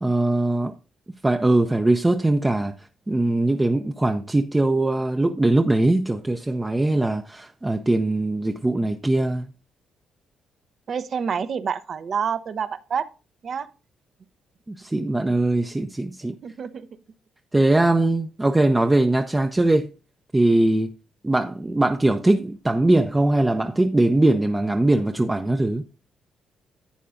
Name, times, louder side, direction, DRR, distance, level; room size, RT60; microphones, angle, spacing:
voice 1, 0.0-0.7 1.2-2.7 3.1-9.5 14.7-16.4 17.5-19.9 20.3-20.9 21.2-25.8, right 2 dB, 15° right, 0.6 m, -21 dB
voice 2, 10.9-13.1 13.4-13.7 16.4-16.9, right 7 dB, 50° right, 0.7 m, -27 dB
11.0 x 8.4 x 2.5 m
cardioid pair, 90°, 0 cm